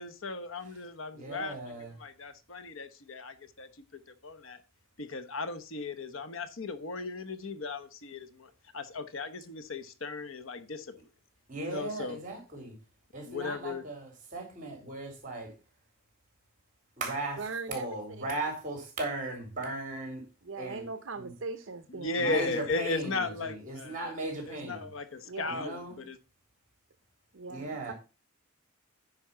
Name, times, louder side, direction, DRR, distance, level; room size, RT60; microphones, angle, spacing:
voice 1, 0.0-4.6 5.0-10.9 11.6-12.2 13.2-13.8 22.0-24.1 24.5-26.2, left 3 dB, 70° left, 1.0 m, -36 dB
voice 2, 1.1-1.9 11.5-12.8 13.1-15.5 17.0-17.4 17.7-20.2 20.6-20.9 21.2-21.3 22.2-24.9 25.5-26.0 27.5-27.9, right 2 dB, 40° right, 4.1 m, -37 dB
voice 3, 17.4-18.3 20.4-22.5 25.2-25.8 27.3-27.9, right 4 dB, 65° right, 0.7 m, -40 dB
9.8 x 5.2 x 5.7 m
head